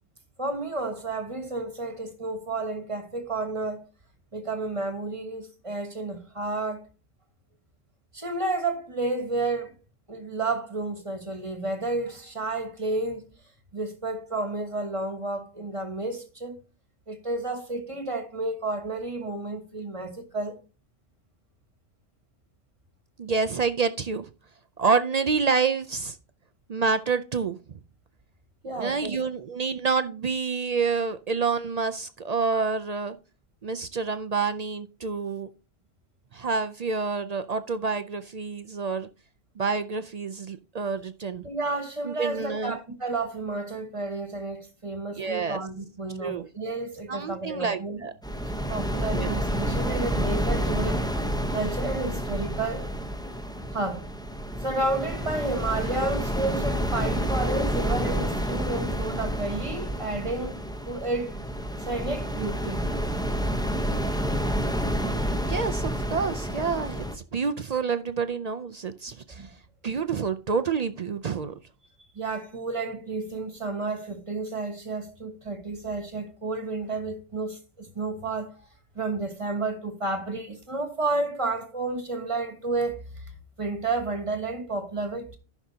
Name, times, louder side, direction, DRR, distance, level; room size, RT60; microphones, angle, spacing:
voice 1, 0.4-3.9 4.3-6.9 8.1-9.8 10.1-13.3 13.7-16.6 17.1-20.6 28.6-29.2 41.4-48.0 48.7-51.0 51.5-52.9 53.7-54.0 54.6-61.3 61.8-62.9 69.4-69.5 72.0-78.7 78.9-83.3 83.6-85.4, right 2 dB, 30° right, 1.5 m, -31 dB
voice 2, 23.2-24.3 24.8-26.2 26.7-27.6 28.8-33.2 33.6-35.5 36.3-39.1 39.6-41.4 42.0-42.8 45.2-45.6 46.2-46.5 47.1-48.1 49.1-49.4 65.5-69.5 69.8-71.5, right 5 dB, 50° right, 0.5 m, -28 dB
sound 1, 48.2-67.2, equal, 5° left, 0.7 m, -29 dB
14.5 x 6.0 x 2.8 m
omnidirectional pair, 1.1 m